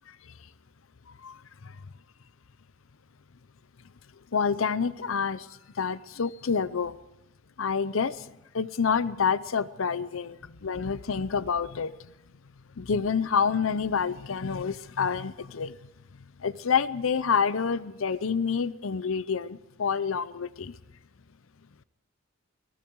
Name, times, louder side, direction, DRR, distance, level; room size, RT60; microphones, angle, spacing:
voice 1, 1.2-1.7 4.3-5.5 5.8-7.0 7.6-8.3 8.5-11.9 12.8-15.7 16.4-20.7, left 6 dB, 90° left, 16 dB, 0.7 m, -28 dB
29.5 x 19.0 x 4.7 m, 0.91 s
head